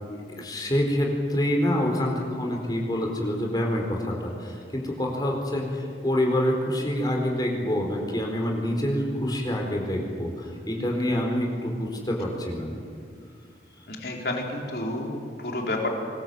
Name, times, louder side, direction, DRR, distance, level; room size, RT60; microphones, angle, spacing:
voice 1, 0.1-12.7, left 1 dB, 20° left, 0 dB, 4.3 m, -27 dB
voice 2, 13.9-15.9, left 1 dB, 65° left, 0 dB, 4.0 m, -30 dB
24.5 x 21.5 x 7.9 m, 2.3 s
head